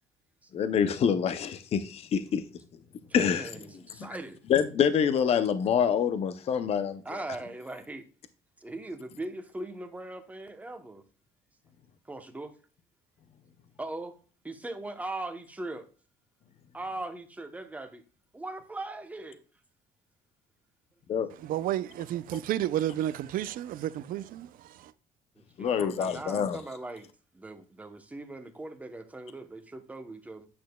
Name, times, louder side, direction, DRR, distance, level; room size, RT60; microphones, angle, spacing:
voice 1, 0.5-2.4 3.1-3.5 4.5-7.0 21.1-21.3 25.6-26.6, left 7 dB, 40° left, 0.6 m, -26 dB
voice 2, 3.1-4.4 7.0-8.1 8.6-11.0 12.1-12.5 13.8-14.1 14.4-15.9 16.7-18.0 18.3-19.4 25.4-27.1 27.3-30.5, right 2 dB, 10° right, 0.8 m, -40 dB
voice 3, 21.4-24.9, right 12 dB, 55° right, 0.4 m, -31 dB
8.6 x 6.3 x 2.2 m
cardioid pair, 145°, 17 cm